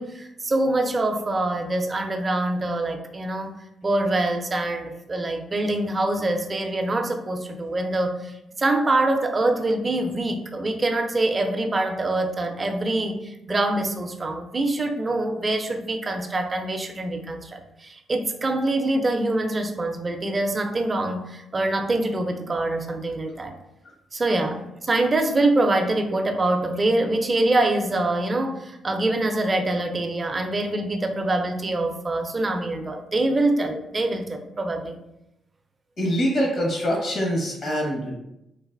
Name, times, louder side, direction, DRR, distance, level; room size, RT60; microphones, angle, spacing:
voice 1, 0.0-3.5 3.8-23.6 24.1-34.9, right 2 dB, 30° right, 5 dB, 0.5 m, -25 dB
voice 2, 36.0-38.2, equal, 65° left, -2 dB, 1.1 m, -24 dB
3.9 x 2.5 x 2.5 m, 0.87 s
cardioid pair, 85°, 0 cm